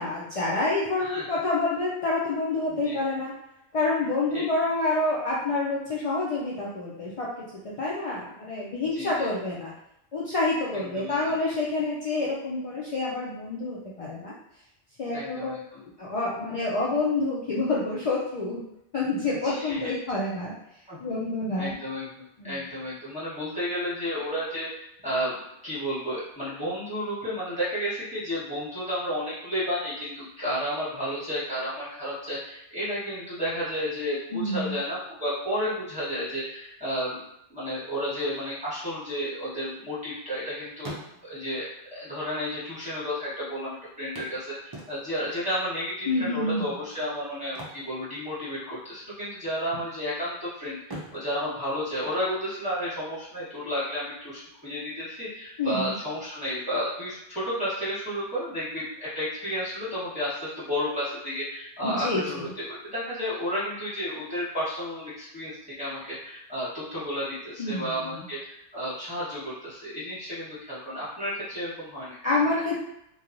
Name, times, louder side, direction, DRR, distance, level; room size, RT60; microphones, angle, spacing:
voice 1, 0.0-3.3 3.7-9.7 10.1-14.3 15.0-15.5 15.8-18.6 18.9-20.5 21.0-21.7 22.4-22.7 34.3-34.8 46.1-46.7 55.6-56.0 61.8-62.5 67.6-68.3 72.2-72.8, left 2 dB, 55° left, -6 dB, 0.3 m, -28 dB
voice 2, 1.0-1.3 2.7-3.0 4.3-4.4 8.8-9.3 10.7-11.2 15.1-15.8 19.4-19.9 20.9-21.0 21.6-37.2 37.5-62.5 62.8-72.2, equal, 5° right, -10 dB, 1.1 m, -32 dB
sound 1, 39.4-40.4 40.7-41.6 42.5-42.6 42.8-42.9 44.1-45.3 47.4-48.7 49.0-49.2 49.7-50.3 50.8-52.6 54.5-54.6 55.1-55.2, right 1 dB, 35° right, 0.4 m, -44 dB
3.0 x 2.2 x 2.5 m, 0.81 s
omnidirectional pair, 1.2 m